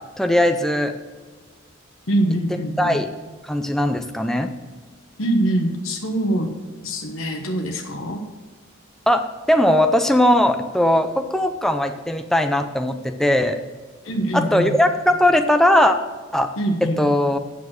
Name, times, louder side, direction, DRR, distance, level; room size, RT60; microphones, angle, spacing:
voice 1, 0.2-0.9 2.8-3.1 3.4-4.5 9.1-13.6 14.3-16.0 16.3-16.5 17.0-17.4, left 1 dB, ahead, 6 dB, 0.5 m, -19 dB
voice 2, 2.1-3.0 5.2-6.5 6.8-8.2 14.0-14.8 16.6-17.1, right 1 dB, 70° left, 2 dB, 1.2 m, -23 dB
8.7 x 7.1 x 6.3 m, 1.3 s
head